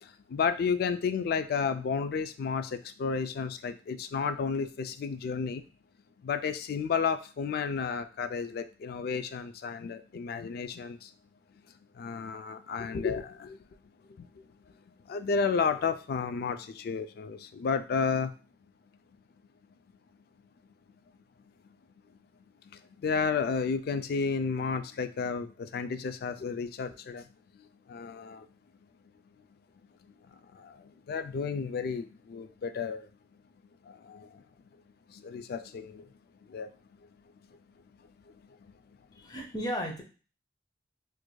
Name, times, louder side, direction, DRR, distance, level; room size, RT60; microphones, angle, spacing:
voice 1, 0.0-5.6 6.2-11.1 11.9-13.6 14.1-14.4 15.0-18.3 21.6-21.8 22.7-27.3 27.5-28.5 30.5-33.1 33.8-34.4 35.1-36.1 36.5-37.0 38.3-39.0, left 5 dB, 60° left, 10 dB, 0.3 m, -32 dB
voice 2, 39.1-40.0, equal, 25° left, 1 dB, 0.7 m, -34 dB
4.4 x 2.5 x 2.2 m, 0.36 s
head